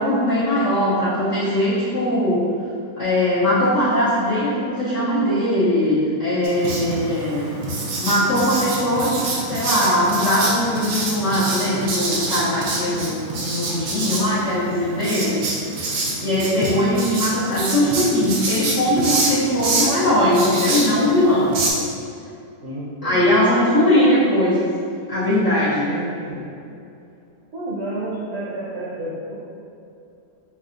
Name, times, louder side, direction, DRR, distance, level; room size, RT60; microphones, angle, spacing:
voice 1, 0.0-2.4 3.0-7.4 8.0-15.4 16.2-21.6 23.0-24.5 25.1-25.9, left 1 dB, 55° left, -11 dB, 1.0 m, -20 dB
Writing, 6.4-21.7, right 2 dB, 80° right, 1.3 m, -26 dB
voice 2, 22.6-23.2 23.9-24.1 25.9-26.4 27.5-29.3, right 1 dB, 50° right, -8 dB, 0.9 m, -30 dB
6.4 x 2.3 x 2.4 m, 2.6 s
omnidirectional pair, 1.8 m